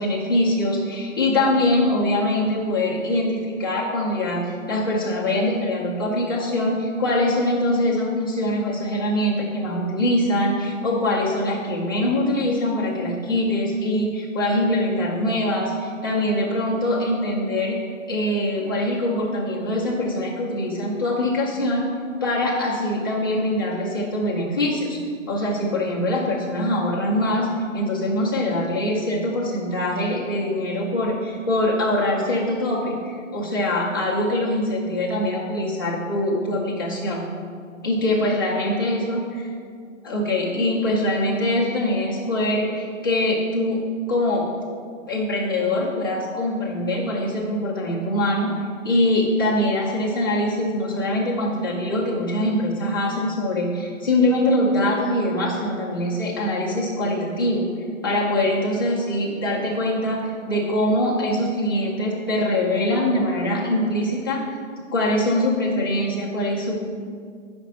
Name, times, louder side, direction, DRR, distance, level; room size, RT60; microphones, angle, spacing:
voice 1, 0.0-17.8 18.1-21.8 22.2-25.0 25.3-37.2 37.8-39.5 40.0-44.5 45.1-57.7 58.0-64.6 64.9-66.8, left 1 dB, 15° left, -6 dB, 0.5 m, -23 dB
5.1 x 5.0 x 5.4 m, 2.1 s
hypercardioid pair, 170°, 39 cm